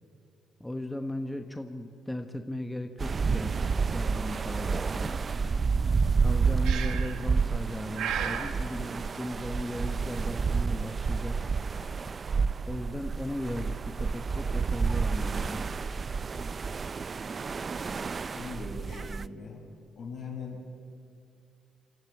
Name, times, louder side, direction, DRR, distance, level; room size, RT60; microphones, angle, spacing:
voice 1, 0.6-5.2 6.2-11.4 12.7-15.7, left 1 dB, 5° left, 6 dB, 1.1 m, -37 dB
sound 1, 3.0-19.3, right 5 dB, 40° right, 0.4 m, -30 dB
Breathing, 6.6-7.3 8.0-8.6, right 8 dB, 85° right, 1.5 m, -33 dB
voice 2, 18.3-19.6 20.0-20.6, left 4 dB, 65° left, 0 dB, 6.2 m, -40 dB
28.0 x 13.0 x 8.5 m, 2.5 s
cardioid pair, 90°, 0 cm